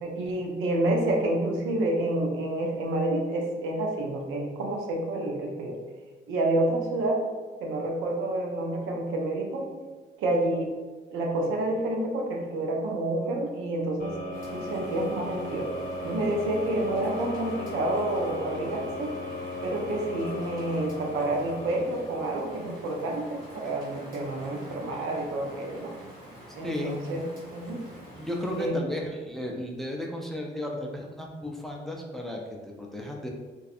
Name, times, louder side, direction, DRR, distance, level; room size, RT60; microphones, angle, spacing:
voice 1, 0.0-5.8 6.3-7.2 7.6-9.7 10.2-10.7 11.1-14.2 14.5-15.7 16.0-19.1 19.6-25.9 26.5-27.9 28.6-28.8, right 1 dB, 85° right, 1 dB, 0.5 m, -29 dB
sound 1, 14.0-22.9, left 1 dB, 45° left, 0.6 m, -37 dB
Rain, 14.3-28.7, equal, 45° right, 1.5 m, -47 dB
voice 2, 26.6-27.0 28.2-33.3, left 1 dB, ahead, 0 dB, 0.4 m, -34 dB
2.5 x 2.4 x 2.4 m, 1.3 s
cardioid pair, 90°, 20 cm